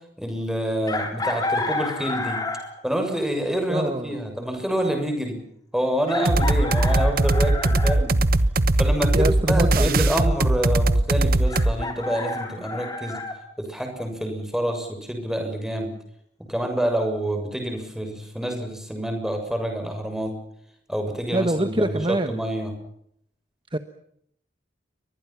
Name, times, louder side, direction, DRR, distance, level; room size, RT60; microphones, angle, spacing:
voice 1, 0.2-2.4 2.8-5.4 5.7-8.1 8.8-13.2 13.6-15.9 16.4-20.4 20.9-22.7, right 1 dB, 5° right, 4 dB, 7.0 m, -27 dB
Chicken rooster, 0.9-2.8 4.5-4.6 6.1-8.0 11.5-13.4, left 2 dB, 20° left, 4.1 m, -30 dB
voice 2, 3.7-4.1 9.1-10.1 21.3-22.3 23.7-23.8, right 1 dB, 30° right, 9 dB, 1.2 m, -24 dB
sound 1, 6.3-11.8, right 1 dB, 55° right, 1.2 m, -20 dB
29.5 x 24.0 x 5.9 m, 0.69 s
head